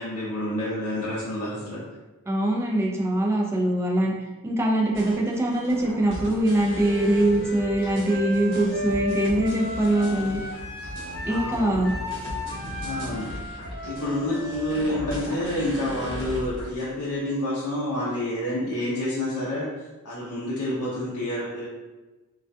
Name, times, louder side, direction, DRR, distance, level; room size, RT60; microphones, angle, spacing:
voice 1, 0.0-1.8 11.2-11.8 12.1-12.2 12.8-13.3 13.8-21.7, left 1 dB, 85° left, -7 dB, 0.5 m, -29 dB
voice 2, 2.3-4.1 4.4-10.4 11.3-11.9, right 1 dB, 10° right, -2 dB, 0.3 m, -23 dB
sound 1, 4.9-16.7, equal, 60° right, 0.8 m, -37 dB
Wind instrument woodwind instrument, 6.7-16.5, left 2 dB, 45° left, 0.8 m, -36 dB
2.3 x 2.2 x 2.5 m, 1.2 s
head